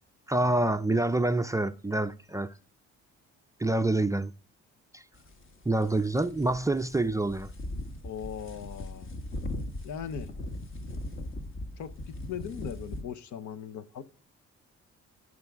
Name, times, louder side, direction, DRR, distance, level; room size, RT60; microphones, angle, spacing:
voice 1, 0.3-2.5 3.6-4.3 4.9-5.0 5.7-7.5, right 2 dB, 10° right, 0.4 m, -27 dB
sound 1, 5.1-13.0, left 1 dB, 40° left, 1.4 m, -39 dB
voice 2, 8.0-9.1 9.8-10.3 11.8-14.0, left 8 dB, 70° left, 0.9 m, -39 dB
12.5 x 5.2 x 3.5 m
cardioid pair, 90°, 30 cm